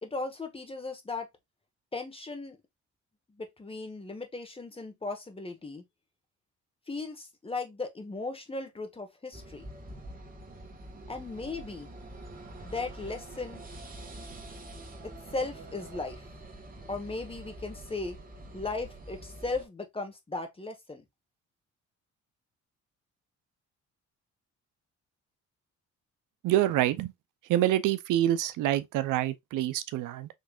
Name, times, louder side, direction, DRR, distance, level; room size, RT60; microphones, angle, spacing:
voice 1, 0.0-1.3 1.9-2.6 3.3-5.8 6.9-9.6 11.1-11.9 12.6-13.6 15.0-16.2 16.9-18.2 18.5-21.0, left 3 dB, 20° left, 1.3 m, -37 dB
sound 1, 9.3-19.6, right 1 dB, 30° right, 1.5 m, -45 dB
voice 2, 26.4-27.1 27.5-30.3, right 13 dB, 85° right, 0.6 m, -26 dB
5.3 x 3.1 x 2.4 m
cardioid pair, 90°, 30 cm